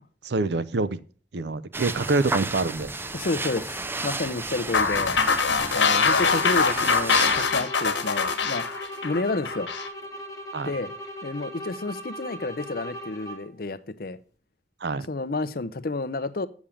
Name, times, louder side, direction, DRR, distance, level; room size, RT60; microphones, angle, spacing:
voice 1, 0.2-1.0 1.3-2.9 10.5-10.7 14.8-15.1, right 3 dB, 65° right, 15 dB, 0.5 m, -26 dB
sound 1, 1.7-7.4, right 3 dB, 10° right, 0.3 m, -33 dB
voice 2, 3.1-5.1 5.7-8.7 9.0-9.7 10.6-10.9 11.2-14.2 15.1-16.5, left 3 dB, 55° left, 12 dB, 0.6 m, -30 dB
sound 2, 4.7-9.9, left 5 dB, 85° left, 1.4 m, -23 dB
sound 3, 6.2-13.6, equal, 20° left, 1.3 m, -39 dB
7.3 x 7.3 x 4.9 m, 0.42 s
head